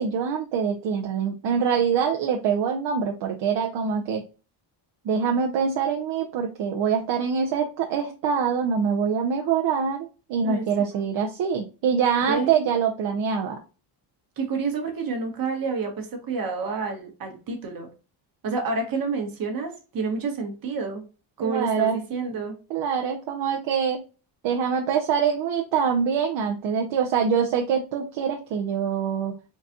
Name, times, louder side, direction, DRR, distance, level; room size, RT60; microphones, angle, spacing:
voice 1, 0.0-4.2 5.0-13.6 21.4-22.0 22.7-24.0 24.4-29.3, right 6 dB, 65° right, 2 dB, 0.7 m, -24 dB
voice 2, 12.3-12.7 14.4-17.9 18.4-21.0 21.4-22.6, right 4 dB, 45° right, 3 dB, 1.2 m, -29 dB
4.0 x 2.3 x 2.5 m, 0.32 s
cardioid pair, 135°, 48 cm